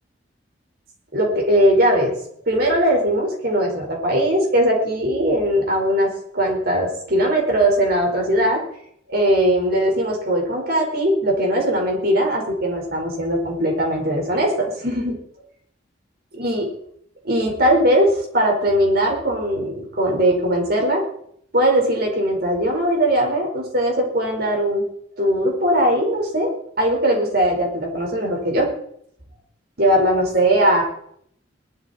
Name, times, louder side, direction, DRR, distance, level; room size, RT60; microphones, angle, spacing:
voice 1, 1.1-2.1 2.4-8.6 9.1-15.1 16.3-16.7 17.2-21.0 21.5-24.8 25.2-26.5 26.8-28.7 29.8-30.8, right 1 dB, 55° right, 1 dB, 4.8 m, -20 dB
19.5 x 13.0 x 4.4 m, 0.69 s
head